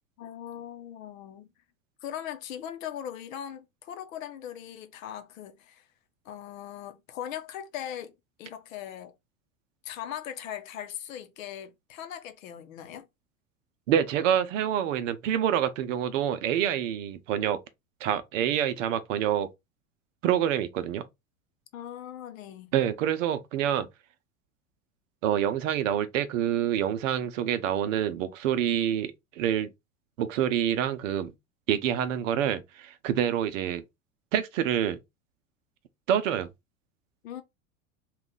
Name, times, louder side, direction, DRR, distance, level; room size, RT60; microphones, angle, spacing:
voice 1, 0.2-1.5 2.0-5.9 6.2-9.1 9.8-13.1 21.7-22.7 37.2-37.4, left 10 dB, 70° left, 0.8 m, -40 dB
voice 2, 13.9-17.6 18.0-19.5 20.2-21.0 22.7-23.9 25.2-29.7 30.2-31.3 31.7-33.8 34.3-35.0 36.1-36.5, right 10 dB, 65° right, 0.7 m, -27 dB
2.9 x 2.4 x 3.7 m
hypercardioid pair, 85°, 42 cm